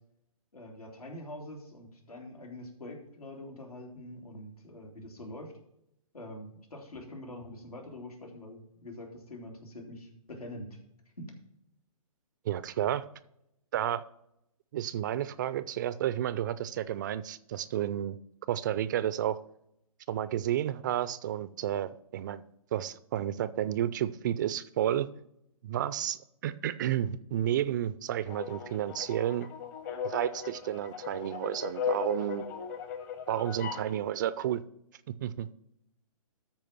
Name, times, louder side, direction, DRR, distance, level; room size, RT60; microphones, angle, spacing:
voice 1, 0.5-5.6 6.1-10.8 11.2-11.3, left 1 dB, 85° left, 1 dB, 3.2 m, -45 dB
voice 2, 12.5-13.1 13.7-14.0 14.7-18.2 18.5-19.4 20.1-22.4 22.7-25.1 25.6-29.5 30.0-32.4 33.3-34.6 35.2-35.5, right 11 dB, 30° right, 16 dB, 0.4 m, -31 dB
sound 1, 28.3-33.9, left 7 dB, 30° left, 1.0 m, -37 dB
13.0 x 4.5 x 5.9 m, 0.78 s
figure-of-eight pair, 135°, 19 cm